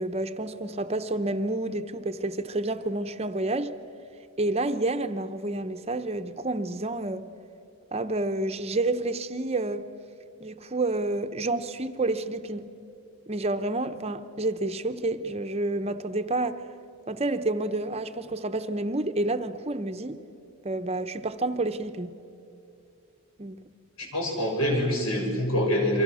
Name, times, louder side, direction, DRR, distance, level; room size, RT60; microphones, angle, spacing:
voice 1, 0.0-3.8 4.4-7.2 7.9-9.9 10.4-12.7 13.3-16.6 17.1-20.2 20.6-22.1 23.4-23.6, right 2 dB, 30° right, 0.8 m, -29 dB
voice 2, 24.0-26.0, equal, 80° left, 6.7 m, -25 dB
29.0 x 24.5 x 6.3 m
head